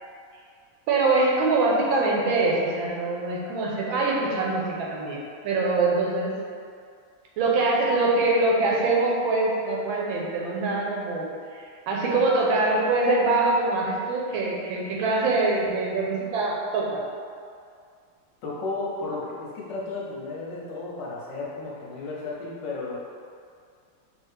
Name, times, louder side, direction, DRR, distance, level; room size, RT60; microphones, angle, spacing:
voice 1, 0.9-6.4 7.4-17.0, right 3 dB, 75° right, -3 dB, 1.4 m, -24 dB
voice 2, 18.4-23.0, left 3 dB, 70° left, -4 dB, 1.2 m, -33 dB
5.5 x 2.8 x 3.3 m, 2.2 s
omnidirectional pair, 2.3 m